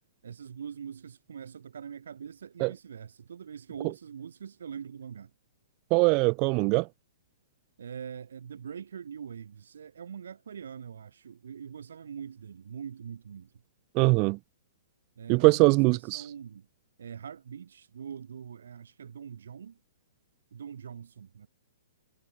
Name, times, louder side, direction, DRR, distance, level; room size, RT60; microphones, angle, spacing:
voice 1, 0.0-5.3 7.8-13.5 15.2-16.7 17.0-19.8 20.5-21.5, right 7 dB, 80° right, 3.0 m, -43 dB
voice 2, 5.9-6.9 13.9-14.4 15.3-16.2, right 30 dB, 25° right, 0.6 m, -22 dB
hypercardioid pair, 170°, 0 cm